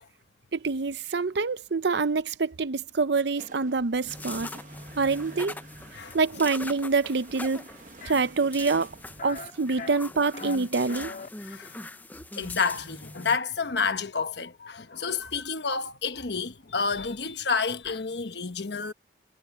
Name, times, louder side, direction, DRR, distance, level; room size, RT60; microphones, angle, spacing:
voice 1, 0.5-4.5 5.0-5.6 6.1-7.7 8.0-8.9 9.2-11.1, right 4 dB, 65° right, 0.6 m, -26 dB
sound 1, 3.4-9.2, right 2 dB, 45° right, 1.1 m, -50 dB
sound 2, 4.1-13.4, left 2 dB, 10° left, 0.5 m, -42 dB
sound 3, 8.0-8.2 8.6-8.9 9.2-9.5 9.8-10.6 10.9-11.3, left 4 dB, 45° left, 2.3 m, -40 dB
voice 2, 11.4-11.8 12.4-18.9, left 5 dB, 65° left, 1.2 m, -30 dB
head